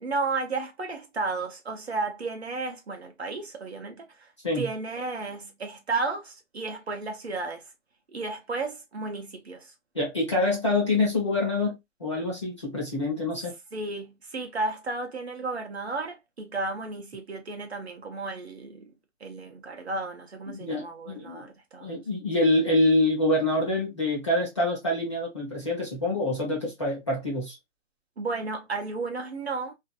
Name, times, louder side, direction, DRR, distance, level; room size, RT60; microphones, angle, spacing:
voice 1, 0.0-4.3 4.5-7.6 8.1-9.7 13.7-18.9 19.2-22.0 28.2-29.7, right 3 dB, 55° right, 0.7 m, -33 dB
voice 2, 9.9-13.5 20.6-21.5 21.8-27.6, left 2 dB, 20° left, 0.8 m, -26 dB
2.5 x 2.3 x 2.3 m
hypercardioid pair, 175°, 40 cm